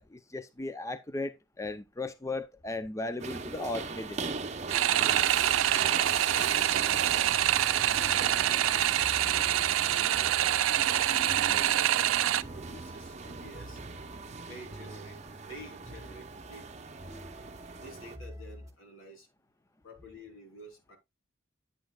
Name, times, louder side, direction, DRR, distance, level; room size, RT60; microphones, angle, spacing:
voice 1, 0.0-4.2, left 2 dB, 15° left, 0.5 m, -36 dB
sound 1, 3.2-18.2, right 4 dB, 35° right, 0.7 m, -40 dB
sound 2, 4.7-12.4, right 12 dB, 80° right, 0.4 m, -26 dB
voice 2, 6.1-11.0 11.5-13.8 14.5-15.2 15.5-16.8 17.8-19.3 19.8-21.0, equal, 80° left, 3.2 m, -50 dB
sound 3, 7.6-18.7, right 1 dB, 15° right, 1.3 m, -48 dB
9.0 x 8.3 x 2.3 m
head